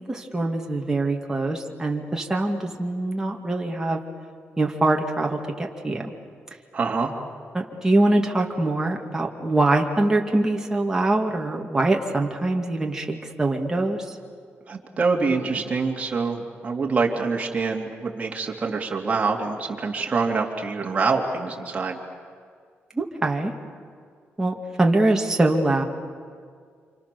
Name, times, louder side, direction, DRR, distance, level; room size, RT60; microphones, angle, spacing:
voice 1, 0.1-4.0 4.6-6.2 7.5-14.2 22.9-23.5 24.4-25.8, right 2 dB, 10° right, 1 dB, 2.1 m, -23 dB
voice 2, 6.7-7.1 14.7-22.0, right 4 dB, 30° right, 0 dB, 2.9 m, -25 dB
29.5 x 27.0 x 7.0 m, 2.1 s
wide cardioid pair, 155°, 4 cm